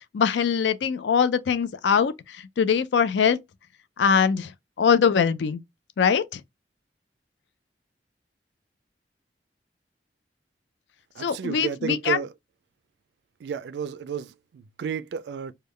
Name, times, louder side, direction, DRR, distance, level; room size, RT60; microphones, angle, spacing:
voice 1, 0.1-3.4 4.0-4.5 4.8-5.6 6.0-6.4 11.2-12.2, left 6 dB, 80° left, 0.4 m, -22 dB
voice 2, 11.2-12.3 13.4-15.5, right 6 dB, 70° right, 0.3 m, -32 dB
3.5 x 2.2 x 3.2 m
head